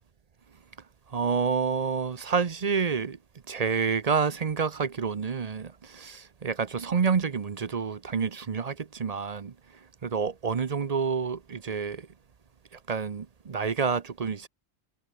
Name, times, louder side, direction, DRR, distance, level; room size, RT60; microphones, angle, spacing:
voice 1, 1.1-3.2 3.5-9.5 10.0-12.1 12.9-14.5, right 5 dB, 40° right, 0.8 m, -28 dB
omnidirectional pair, 1.1 m